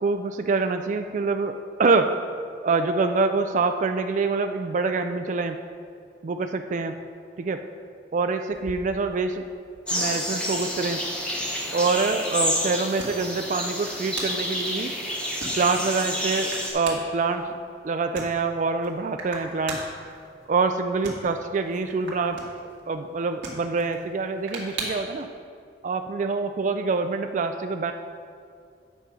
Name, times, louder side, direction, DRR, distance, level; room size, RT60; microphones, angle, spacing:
voice 1, 0.0-2.2 2.6-5.6 6.2-7.0 7.4-7.6 8.1-9.4 9.9-11.0 11.7-14.9 15.6-17.5 17.8-19.8 20.5-22.4 22.9-25.3 25.8-27.9, right 4 dB, 40° right, 7 dB, 0.3 m, -25 dB
sound 1, 8.5-25.2, right 2 dB, 70° right, 2.0 m, -41 dB
sound 2, 9.9-16.7, equal, 5° left, 1.2 m, -29 dB
9.2 x 6.1 x 5.3 m, 2.3 s
head